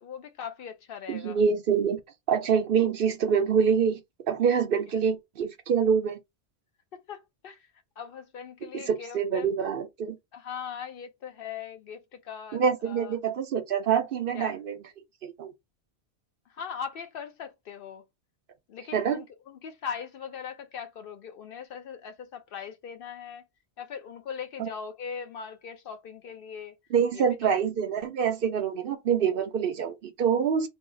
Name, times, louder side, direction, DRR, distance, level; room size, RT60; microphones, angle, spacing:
voice 1, 0.0-1.4 4.9-5.0 6.9-7.7 8.0-9.5 10.3-13.1 14.3-14.6 16.5-18.0 18.7-23.4 23.8-26.7 27.1-27.5, left 7 dB, 65° left, 0.7 m, -40 dB
voice 2, 1.1-2.0 2.3-4.0 4.3-6.2 8.7-10.2 12.5-14.8 15.2-15.5 18.9-19.2 24.6-24.7 26.9-30.7, right 7 dB, 65° right, 0.7 m, -25 dB
2.7 x 2.3 x 3.7 m
omnidirectional pair, 1.1 m